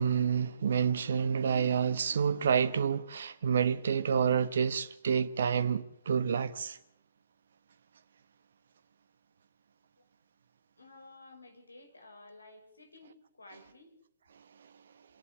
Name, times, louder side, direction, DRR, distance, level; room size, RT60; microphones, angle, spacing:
voice 1, 0.0-6.8, right 7 dB, 60° right, 1.2 m, -28 dB
voice 2, 10.8-13.9, left 2 dB, 85° left, 6.2 m, -54 dB
28.0 x 11.0 x 9.9 m
figure-of-eight pair, 125°, 0 cm